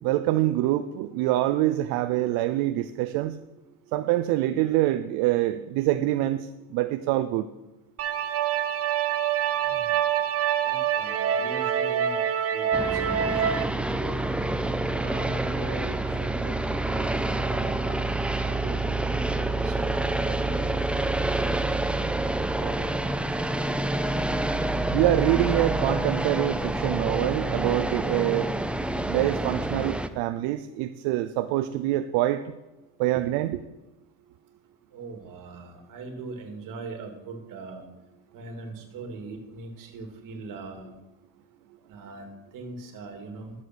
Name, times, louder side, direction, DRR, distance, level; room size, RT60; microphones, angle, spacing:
voice 1, 0.0-3.4 3.9-7.5 24.9-28.5 29.1-32.4 33.0-33.6, right 14 dB, 80° right, 11 dB, 0.7 m, -25 dB
sound 1, 8.0-13.6, right 9 dB, 40° right, 0.9 m, -26 dB
voice 2, 10.6-12.2 12.5-14.2 15.0-18.0 18.4-20.9 22.3-22.8 34.9-37.9 38.3-40.9 41.9-42.3 42.5-43.5, right 3 dB, 55° right, 4 dB, 2.8 m, -41 dB
sound 2, 12.7-30.1, right 2 dB, 5° right, 0.5 m, -27 dB
12.0 x 7.6 x 6.2 m, 1.0 s
cardioid pair, 115°, 37 cm